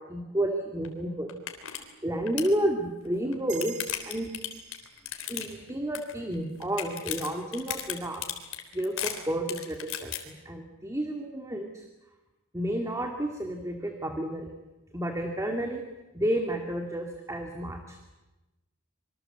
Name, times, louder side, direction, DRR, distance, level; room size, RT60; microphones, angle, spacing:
voice 1, 0.0-1.3 2.0-3.8 4.0-4.3 5.3-8.2 8.7-11.8 12.5-14.5 14.9-15.8 16.1-18.0, right 1 dB, 15° right, 4 dB, 2.2 m, -31 dB
sound 1, 0.8-0.9 1.3-1.8 2.1-2.5 3.2-5.7 5.9-6.3 6.6-10.2, left 11 dB, 70° left, 3.8 m, -35 dB
sound 2, 3.5-6.6, right 11 dB, 50° right, 3.1 m, -48 dB
26.5 x 24.0 x 7.9 m, 1.0 s
head